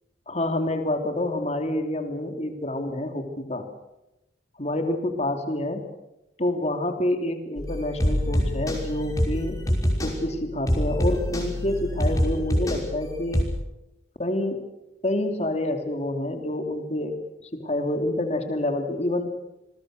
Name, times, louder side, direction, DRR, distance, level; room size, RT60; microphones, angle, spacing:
voice 1, 0.3-3.7 4.6-5.9 6.4-9.6 10.0-13.5 14.2-14.6 15.0-17.2 17.5-19.3, left 1 dB, 35° left, 6 dB, 3.1 m, -27 dB
sound 1, 7.6-13.4, equal, 20° left, 5.8 m, -26 dB
28.0 x 21.5 x 6.6 m, 0.95 s
head